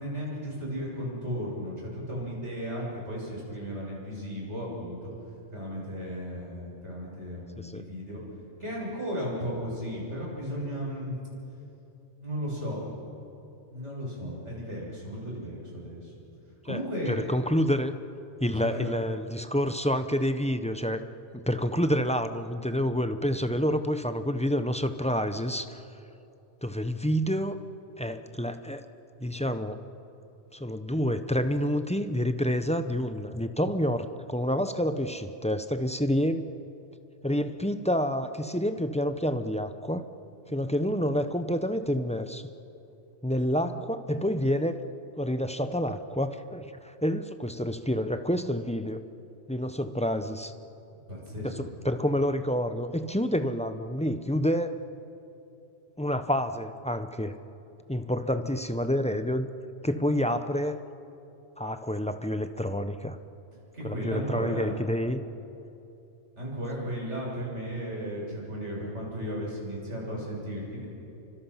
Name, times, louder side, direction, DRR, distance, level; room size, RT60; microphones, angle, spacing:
voice 1, 0.0-5.1 5.5-8.2 8.6-11.2 12.2-12.8 13.7-16.1 16.6-17.2 18.6-19.0 51.1-51.7 63.7-64.7 66.4-70.9, equal, 80° right, -4 dB, 7.3 m, -35 dB
voice 2, 17.1-17.9 18.4-21.1 21.4-25.7 26.6-27.6 28.0-28.8 29.2-29.8 30.5-36.5 37.2-40.0 40.5-42.4 43.2-44.8 45.2-49.0 49.5-50.5 51.4-54.8 56.0-57.4 57.9-59.5 59.8-60.8 61.6-63.2 63.8-65.2, equal, 5° left, 8 dB, 0.7 m, -28 dB
29.0 x 25.0 x 5.8 m, 2.9 s
omnidirectional pair, 1.2 m